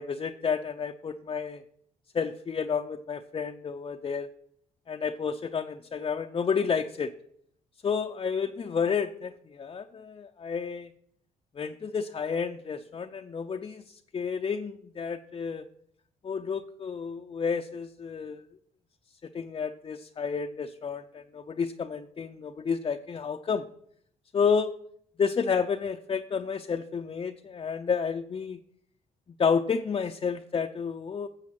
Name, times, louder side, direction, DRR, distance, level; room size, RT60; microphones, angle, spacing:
voice 1, 0.0-1.6 2.1-4.3 4.9-7.1 7.8-10.9 11.6-15.6 16.2-18.4 19.3-23.7 24.3-24.7 25.2-28.6 29.4-31.3, left 6 dB, 35° left, 4 dB, 0.5 m, -30 dB
10.5 x 7.0 x 5.9 m, 0.68 s
cardioid pair, 80°, 16 cm